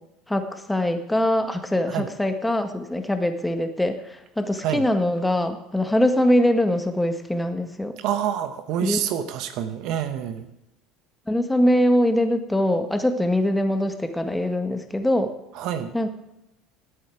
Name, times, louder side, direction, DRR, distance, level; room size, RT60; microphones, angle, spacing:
voice 1, 0.3-4.0 4.4-7.9 8.8-9.0 11.3-15.3 15.9-16.1, left 1 dB, 5° left, 6 dB, 1.8 m, -22 dB
voice 2, 8.0-10.5 15.5-15.9, right 10 dB, 60° right, 10 dB, 1.0 m, -27 dB
18.5 x 8.4 x 4.9 m, 0.89 s
hypercardioid pair, 70°, 0 cm